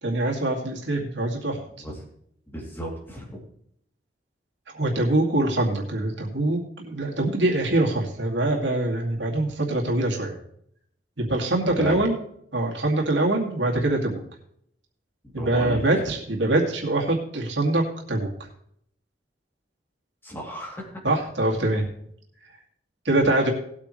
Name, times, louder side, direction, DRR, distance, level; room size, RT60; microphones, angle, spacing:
voice 1, 0.0-1.6 4.7-10.3 11.2-12.2 12.5-14.2 15.3-17.8 18.1-18.3 21.0-21.9 23.0-23.5, right 2 dB, 85° right, 0 dB, 2.3 m, -24 dB
voice 2, 2.5-3.4 11.8-12.0 15.4-15.8 20.2-20.9, equal, 15° left, -2 dB, 2.9 m, -33 dB
18.5 x 8.5 x 3.2 m, 0.69 s
head